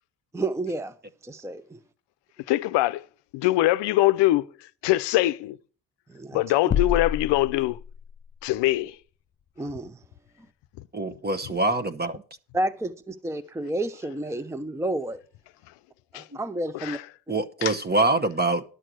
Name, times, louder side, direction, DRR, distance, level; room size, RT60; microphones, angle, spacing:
voice 1, 0.3-0.9 1.2-1.8 6.1-6.4 9.6-10.0 12.5-15.2 16.1-17.0, right 1 dB, 5° right, 0.7 m, -30 dB
voice 2, 2.5-3.0 3.3-5.6 6.3-7.8 8.4-9.0 16.1-16.3 16.7-17.0 17.6-17.7, left 16 dB, 85° left, 0.6 m, -23 dB
sound 1, 6.7-8.3, left 8 dB, 30° left, 0.4 m, -28 dB
voice 3, 10.9-12.2 17.3-18.6, right 2 dB, 25° right, 1.0 m, -24 dB
11.5 x 6.4 x 6.1 m
cardioid pair, 75°, 42 cm